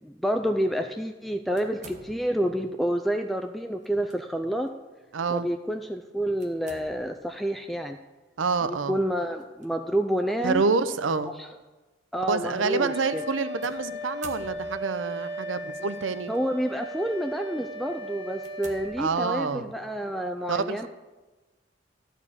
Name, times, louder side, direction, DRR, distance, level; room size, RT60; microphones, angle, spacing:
voice 1, 0.0-4.7 5.3-8.0 8.6-10.6 11.4-11.5 12.1-13.2 16.3-20.9, equal, ahead, 5 dB, 0.4 m, -29 dB
sound 1, 1.6-2.6 3.8-4.2 4.7-4.8 6.4-7.3 9.4-9.7 10.5-10.6 13.6-15.0 15.9-16.4 17.0-17.2 17.7-17.8 18.4-19.6, right 3 dB, 40° right, 1.2 m, -49 dB
voice 2, 5.1-5.5 8.4-9.0 10.4-11.3 12.2-16.3 19.0-19.7 20.5-20.9, right 4 dB, 90° right, 12 dB, 0.6 m, -27 dB
Wind instrument woodwind instrument, 12.5-19.0, equal, 30° left, 2.3 m, -37 dB
13.0 x 4.6 x 8.5 m, 1.2 s
head